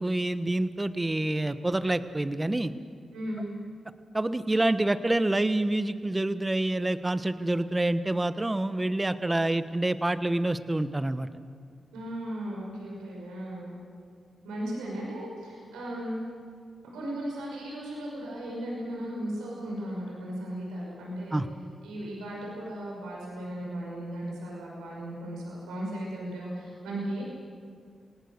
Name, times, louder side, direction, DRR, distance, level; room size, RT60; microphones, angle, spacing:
voice 1, 0.0-2.7 4.1-11.3 21.3-21.5, right 1 dB, 25° right, 12 dB, 1.2 m, -27 dB
voice 2, 3.1-3.5 11.9-13.7 14.4-16.2 16.8-21.4 21.8-27.2, right 1 dB, 90° right, -3 dB, 5.9 m, -36 dB
27.0 x 18.5 x 6.7 m, 2.1 s
supercardioid pair, 40°, 0 cm